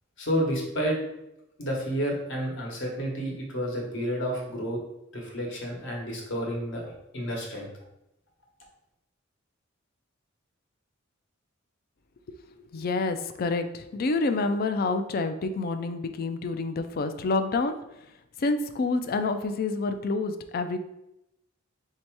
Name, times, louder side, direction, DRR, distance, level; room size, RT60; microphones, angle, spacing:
voice 1, 0.2-1.0 1.6-4.8 5.1-7.7, equal, 60° left, -1 dB, 1.1 m, -30 dB
voice 2, 12.7-17.7 18.4-20.8, left 3 dB, 45° left, 8 dB, 0.4 m, -28 dB
3.4 x 2.8 x 4.6 m, 0.86 s
head